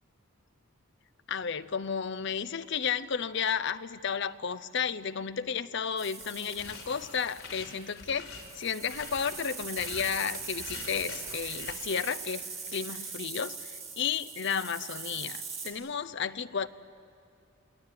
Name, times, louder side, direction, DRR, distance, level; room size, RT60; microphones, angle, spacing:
voice 1, 1.3-12.5 12.7-16.7, left 7 dB, 55° left, 13 dB, 0.7 m, -33 dB
sound 1, 6.0-15.7, right 5 dB, 30° right, 5.3 m, -41 dB
sound 2, 6.2-11.7, left 4 dB, 85° left, 4.2 m, -45 dB
29.5 x 19.5 x 8.5 m, 2.6 s
head